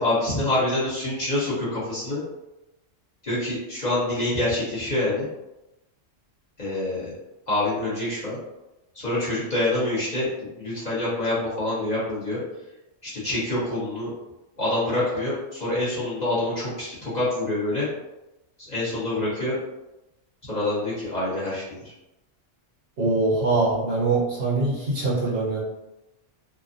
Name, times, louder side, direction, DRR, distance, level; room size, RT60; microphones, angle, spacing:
voice 1, 0.0-2.2 3.2-5.3 6.6-7.1 7.5-8.4 8.9-10.3 10.6-12.4 13.0-14.1 14.6-17.9 18.6-19.6 20.5-21.9, left 1 dB, 35° left, -9 dB, 1.0 m, -26 dB
voice 2, 23.0-25.6, right 3 dB, 55° right, -7 dB, 1.1 m, -23 dB
3.3 x 2.0 x 2.5 m, 0.97 s
omnidirectional pair, 1.3 m